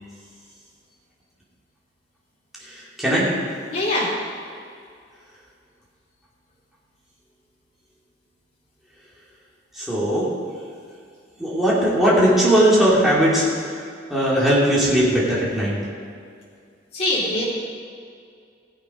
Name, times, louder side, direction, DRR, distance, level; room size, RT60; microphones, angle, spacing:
voice 1, 2.6-3.4 9.7-10.4 11.4-15.8, equal, ahead, -8 dB, 3.0 m, -19 dB
voice 2, 3.7-4.1 16.9-17.4, left 1 dB, 35° left, -5 dB, 3.1 m, -22 dB
16.0 x 8.2 x 5.3 m, 2.3 s
head